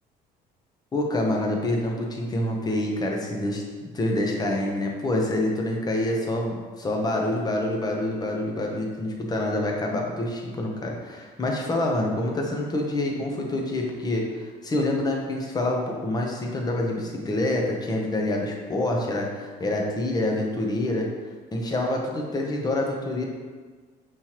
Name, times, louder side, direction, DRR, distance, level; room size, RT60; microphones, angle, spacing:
voice 1, 0.9-21.1 21.5-23.3, left 1 dB, 25° left, 0 dB, 0.8 m, -27 dB
5.4 x 3.1 x 2.9 m, 1.5 s
cardioid pair, 110°, 17 cm